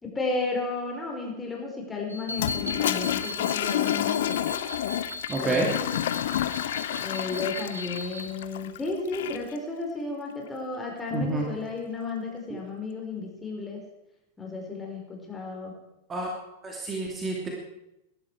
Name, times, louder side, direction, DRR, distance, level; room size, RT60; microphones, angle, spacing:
voice 1, 0.0-4.4 5.4-5.9 7.0-13.8 14.4-15.7, left 3 dB, 15° left, 0 dB, 4.6 m, -33 dB
sound 1, 2.1-8.3, left 1 dB, 90° right, 1.3 m, -38 dB
Toilet flush, 2.3-9.6, left 12 dB, 55° left, 0.8 m, -29 dB
voice 2, 5.3-5.7 11.1-11.5 16.1-16.3 16.6-17.5, right 2 dB, 20° right, -1 dB, 2.9 m, -28 dB
20.5 x 12.0 x 4.8 m, 0.89 s
figure-of-eight pair, 90°, 0 cm